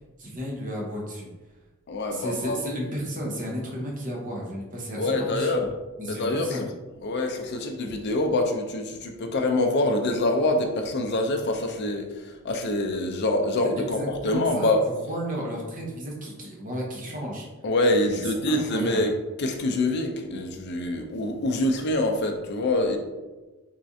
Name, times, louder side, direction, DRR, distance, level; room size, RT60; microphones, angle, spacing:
voice 1, 0.2-1.3 2.1-5.7 6.0-6.7 13.7-17.5 18.0-18.2 18.5-19.0, equal, 40° right, -2 dB, 0.8 m, -33 dB
voice 2, 1.9-2.6 5.0-5.7 6.1-6.7 7.0-14.8 17.6-19.1 19.4-23.0, left 2 dB, 50° left, 4 dB, 0.5 m, -25 dB
3.6 x 3.2 x 2.7 m, 1.2 s
head